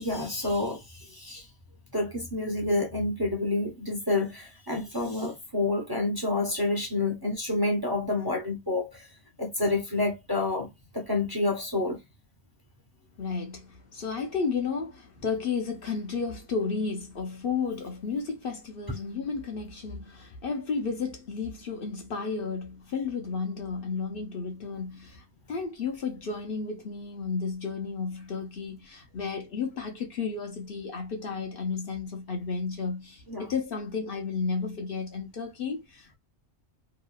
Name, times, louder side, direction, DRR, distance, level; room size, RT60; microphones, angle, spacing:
voice 1, 0.0-1.5 1.9-9.1 9.4-12.0 33.3-33.5, left 2 dB, 25° right, 0.7 m, -29 dB
voice 2, 13.2-36.2, left 5 dB, 55° left, 0.9 m, -33 dB
2.9 x 2.5 x 2.2 m
omnidirectional pair, 1.2 m